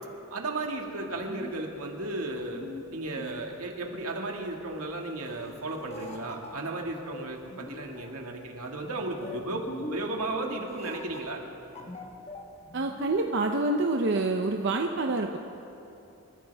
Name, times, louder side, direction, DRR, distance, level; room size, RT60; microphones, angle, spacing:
voice 1, 0.3-2.6 2.9-11.4, right 2 dB, 80° right, 1 dB, 2.0 m, -34 dB
sound 1, 0.9-13.4, left 1 dB, 30° left, 1.4 m, -44 dB
voice 2, 12.7-15.4, right 2 dB, 55° right, 3 dB, 0.7 m, -27 dB
28.0 x 14.5 x 3.5 m, 2.9 s
head